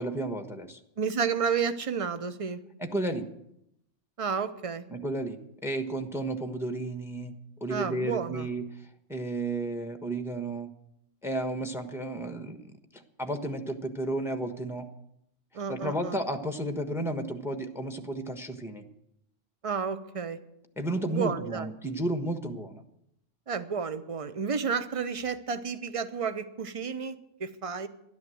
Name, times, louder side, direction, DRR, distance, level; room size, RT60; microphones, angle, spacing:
voice 1, 0.0-0.8 2.8-3.2 4.9-7.3 7.6-8.7 9.1-10.7 11.2-12.7 12.9-14.9 15.7-18.8 20.8-22.8, right 1 dB, ahead, 6 dB, 1.1 m, -32 dB
voice 2, 1.0-2.6 4.2-4.8 7.7-8.5 15.5-16.2 19.6-20.4 21.1-21.7 23.5-27.9, right 6 dB, 30° right, 11 dB, 0.8 m, -31 dB
13.0 x 11.5 x 7.8 m, 0.79 s
omnidirectional pair, 1.3 m